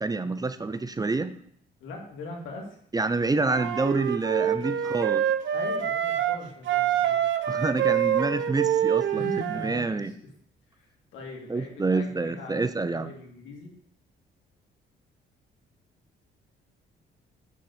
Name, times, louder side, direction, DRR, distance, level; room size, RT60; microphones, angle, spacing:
voice 1, 0.0-1.3 2.9-5.2 7.5-10.1 11.5-13.1, right 3 dB, 20° right, 12 dB, 0.6 m, -27 dB
voice 2, 1.8-2.8 5.5-7.2 9.1-10.3 10.7-10.9 11.1-13.7, left 2 dB, 85° left, 0 dB, 2.5 m, -41 dB
Wind instrument woodwind instrument, 3.4-6.4 6.6-9.8, right 10 dB, 70° right, 0.9 m, -26 dB
9.8 x 4.2 x 6.7 m, 0.63 s
cardioid pair, 90°, 20 cm